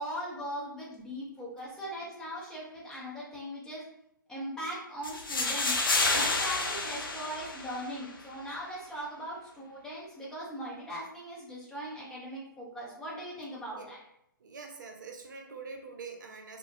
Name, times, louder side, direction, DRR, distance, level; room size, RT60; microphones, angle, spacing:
voice 1, 0.0-3.8 4.3-5.8 6.1-14.0, equal, 5° left, -6 dB, 0.7 m, -39 dB
sound 1, 5.0-8.1, left 3 dB, 80° left, 0.5 m, -29 dB
voice 2, 14.4-16.6, right 4 dB, 60° right, 4 dB, 0.5 m, -44 dB
2.5 x 2.1 x 2.5 m, 0.74 s
figure-of-eight pair, 130°, 11 cm